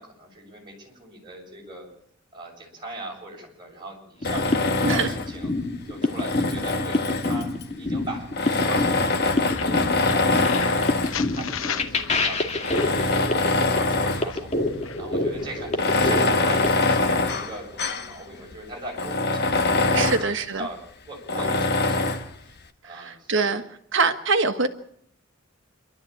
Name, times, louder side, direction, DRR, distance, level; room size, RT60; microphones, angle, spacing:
voice 1, 0.0-1.9 2.3-5.5 5.8-7.5 7.8-13.4 13.7-14.5 15.0-20.2 20.6-20.8 21.1-22.1 22.4-22.5 22.8-23.5, right 1 dB, 25° right, -1 dB, 7.0 m, -39 dB
Tools, 4.2-5.4 6.0-7.6 8.3-11.2 11.9-12.0 12.6-14.4 14.7-14.8 15.7-18.1 18.5-18.6 18.9-20.3 21.3-22.3, left 3 dB, 55° left, 1.3 m, -24 dB
sound 1, 4.2-16.7, left 2 dB, 35° left, 2.2 m, -27 dB
sound 2, 9.5-19.3, left 7 dB, 75° left, 1.0 m, -38 dB
voice 2, 19.9-20.7 22.8-23.6 23.9-24.7, right 4 dB, 65° right, 9 dB, 1.5 m, -24 dB
27.0 x 12.5 x 8.7 m, 0.71 s
head